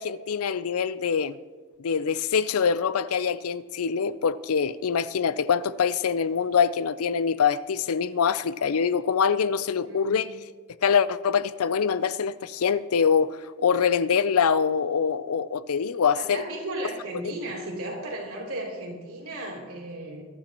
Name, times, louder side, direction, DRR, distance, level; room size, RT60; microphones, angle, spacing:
voice 1, 0.0-1.4 1.8-10.3 10.8-16.4, left 6 dB, 80° left, 0.5 m, -24 dB
voice 2, 9.9-10.2 16.2-20.2, right 1 dB, 75° right, 3.4 m, -35 dB
23.0 x 11.5 x 3.0 m
head